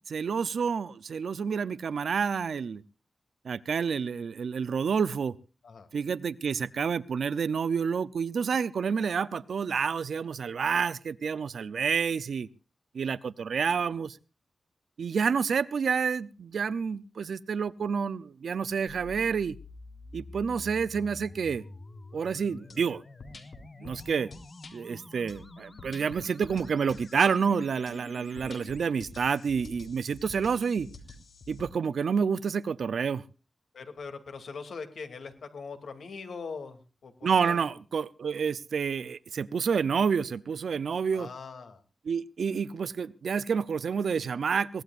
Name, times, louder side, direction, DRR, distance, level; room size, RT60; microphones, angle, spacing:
voice 1, 0.1-2.8 3.4-5.4 5.9-12.5 12.9-14.2 15.0-19.6 20.1-21.6 22.1-23.0 23.8-24.3 24.7-30.9 31.5-33.2 37.2-41.3 42.1-44.8, right 6 dB, 80° right, 0.7 m, -29 dB
sound 1, 18.9-28.9, left 2 dB, 30° left, 1.0 m, -48 dB
sound 2, 22.7-22.8 23.2-24.7 25.3-27.3 27.9-28.0 28.4-31.7, left 3 dB, 55° left, 3.7 m, -48 dB
voice 2, 33.7-37.7 41.1-41.8, left 5 dB, 85° left, 2.7 m, -41 dB
22.5 x 18.0 x 2.5 m
wide cardioid pair, 150°, 0 cm